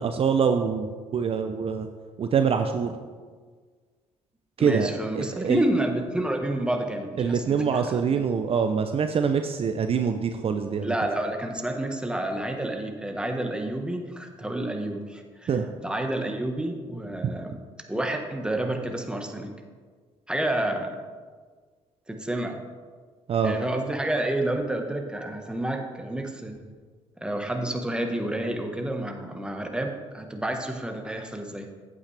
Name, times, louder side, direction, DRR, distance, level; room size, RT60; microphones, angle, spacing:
voice 1, 0.0-1.9 2.2-2.9 4.6-4.9 5.1-5.6 7.2-10.9 15.5-15.7 23.3-23.5, right 6 dB, 45° right, 7 dB, 0.5 m, -25 dB
voice 2, 4.6-8.2 10.8-15.5 15.8-17.5 17.9-19.5 20.3-21.0 22.1-22.6 23.4-26.6 27.2-31.7, right 1 dB, 5° right, 4 dB, 1.3 m, -29 dB
8.7 x 8.6 x 3.4 m, 1.5 s
supercardioid pair, 65°, 13 cm